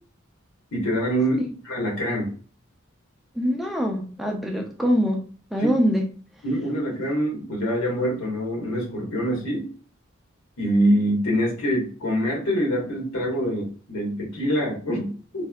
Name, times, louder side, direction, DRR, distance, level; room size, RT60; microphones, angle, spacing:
voice 1, 0.7-2.3 6.4-9.7 10.6-15.5, equal, 80° left, -1 dB, 1.3 m, -25 dB
voice 2, 3.3-5.2 5.5-6.1, equal, ahead, 1 dB, 0.5 m, -23 dB
3.3 x 2.7 x 2.3 m, 0.40 s
head